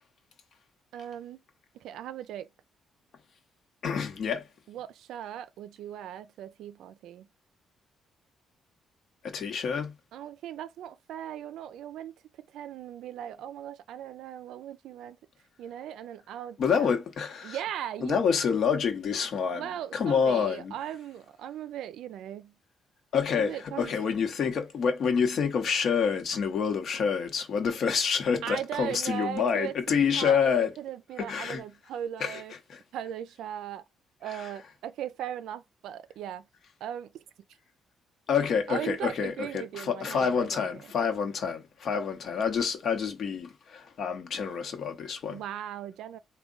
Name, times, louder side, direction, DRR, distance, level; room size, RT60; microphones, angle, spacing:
voice 1, 0.9-1.4 1.8-2.5 4.7-7.3 10.1-12.1 12.5-15.2 15.6-16.9 17.4-18.3 19.5-22.5 23.3-23.9 28.4-32.5 32.9-33.8 34.2-36.4 36.8-37.1 38.7-40.9 45.3-46.2, right 10 dB, 80° right, 0.4 m, -38 dB
voice 2, 3.8-4.4 9.2-9.9 16.6-17.6 18.0-20.7 23.1-30.7 31.3-31.6 32.2-32.4 32.7-32.8 38.3-45.4, left 6 dB, 65° left, 0.9 m, -27 dB
3.5 x 2.2 x 3.8 m
cardioid pair, 90°, 0 cm